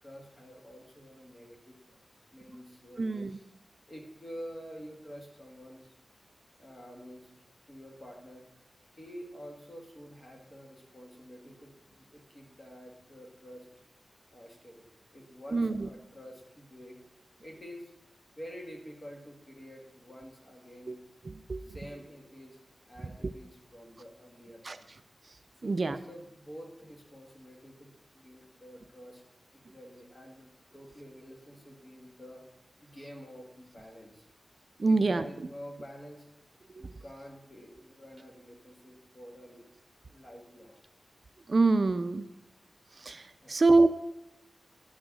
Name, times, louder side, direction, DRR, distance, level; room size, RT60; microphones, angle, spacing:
voice 1, 0.0-2.0 2.3-3.5 3.9-5.9 6.6-7.3 7.7-8.5 9.0-13.7 14.3-14.9 15.1-17.0 17.4-17.9 18.4-21.0 21.6-22.6 22.9-24.9 25.6-29.2 29.5-32.5 32.8-34.3 34.8-36.3 36.8-39.7 40.1-40.8 43.4-43.6, equal, 30° left, 1 dB, 2.0 m, -48 dB
voice 2, 3.0-3.3 15.5-15.9 20.9-21.0 21.5-21.6 24.6-24.8 25.6-26.0 34.8-35.2 36.8-36.9 41.5-42.3 43.0-43.9, right 3 dB, 45° right, 11 dB, 0.4 m, -25 dB
11.0 x 6.2 x 6.1 m, 0.88 s
wide cardioid pair, 130°, 0 cm